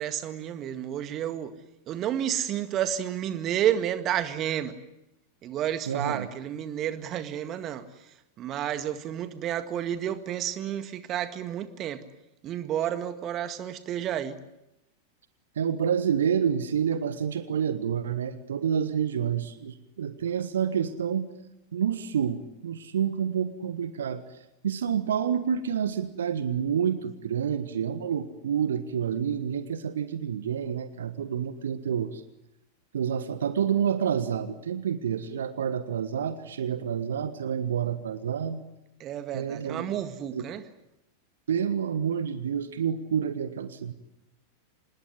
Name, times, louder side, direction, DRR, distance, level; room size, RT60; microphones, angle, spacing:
voice 1, 0.0-1.5 1.9-4.7 5.4-7.8 8.4-12.0 12.4-14.4 39.0-40.6, right 10 dB, 35° right, 11 dB, 1.9 m, -30 dB
voice 2, 5.9-6.3 15.6-21.3 21.7-24.2 24.6-32.2 32.9-38.6 39.3-39.9 40.3-40.4 41.5-43.9, right 8 dB, 65° right, 12 dB, 1.5 m, -28 dB
25.5 x 20.5 x 9.7 m, 0.88 s
figure-of-eight pair, 90°, 0 cm